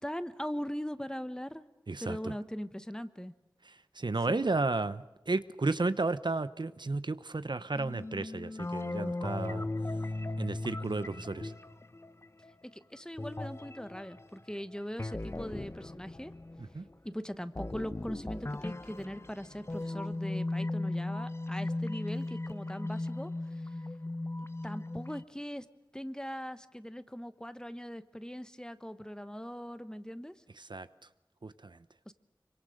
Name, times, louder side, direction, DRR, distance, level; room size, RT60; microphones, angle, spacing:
voice 1, 0.0-1.7 2.0-3.3 4.3-4.5 12.7-16.3 17.0-23.7 24.6-25.7 25.9-30.3 32.1-32.2, equal, 10° left, 12 dB, 1.2 m, -40 dB
voice 2, 1.9-2.3 3.7-9.7 10.4-11.5 16.7-16.8 30.6-30.9 31.4-31.8, right 3 dB, 70° right, 13 dB, 0.8 m, -33 dB
sound 1, 7.7-12.5 13.2-16.9 17.5-25.2, left 2 dB, 30° left, 0.8 m, -37 dB
26.0 x 24.5 x 6.5 m, 1.0 s
wide cardioid pair, 55°, 8 cm